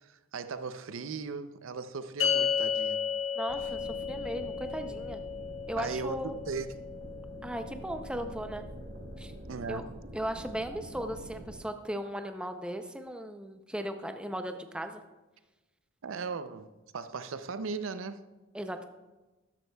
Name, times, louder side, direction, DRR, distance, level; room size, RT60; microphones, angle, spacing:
voice 1, 0.0-3.1 3.6-3.7 5.8-6.2 6.5-6.7 9.5-9.9 16.0-18.2, right 4 dB, 80° right, 0.5 m, -37 dB
sound 1, 2.2-8.7, left 7 dB, 75° left, 1.2 m, -34 dB
voice 2, 3.4-5.2 5.7-6.3 7.4-8.7 9.2-9.3 9.7-9.8 10.1-15.0 18.5-18.9, right 1 dB, 5° right, 0.5 m, -37 dB
sound 2, 3.5-11.6, right 1 dB, 50° right, 1.1 m, -45 dB
13.5 x 10.5 x 2.3 m
head